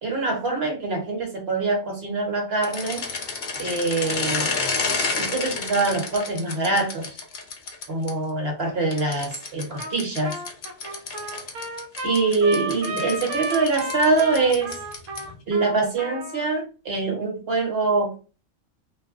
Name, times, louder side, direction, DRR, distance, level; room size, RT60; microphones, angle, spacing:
voice 1, 0.0-3.0 3.6-4.5 5.2-7.1 7.9-10.3 12.0-14.8 15.5-18.1, right 3 dB, 50° right, 1 dB, 1.1 m, -24 dB
sound 1, 2.6-8.1 8.9-15.4, left 4 dB, 60° left, 0.5 m, -31 dB
Trumpet, 9.8-10.0 10.2-16.5, right 1 dB, 65° right, 0.9 m, -33 dB
2.6 x 2.1 x 3.6 m, 0.35 s
omnidirectional pair, 1.5 m